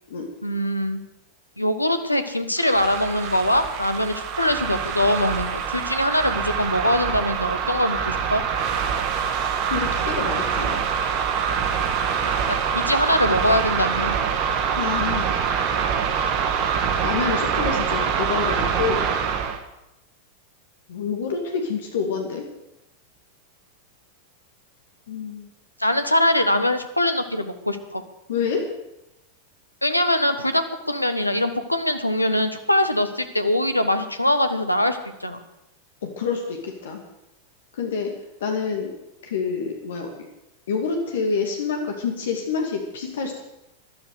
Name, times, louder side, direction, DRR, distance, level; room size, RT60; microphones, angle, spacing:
voice 1, 0.4-1.0 1.6-8.4 12.5-14.1 25.8-28.0 29.8-35.4, left 1 dB, 85° left, 8 dB, 1.3 m, -22 dB
sound 1, 2.6-19.6, right 7 dB, 45° right, 1.7 m, -25 dB
voice 2, 9.7-10.9 14.8-15.3 17.0-19.1 20.9-22.4 25.1-25.5 28.3-28.7 36.0-37.0 37.7-38.1 38.4-38.9 39.2-40.1 40.7-43.4, left 5 dB, 60° left, 3 dB, 2.3 m, -27 dB
14.0 x 12.0 x 6.7 m, 0.90 s
figure-of-eight pair, 90°, 0 cm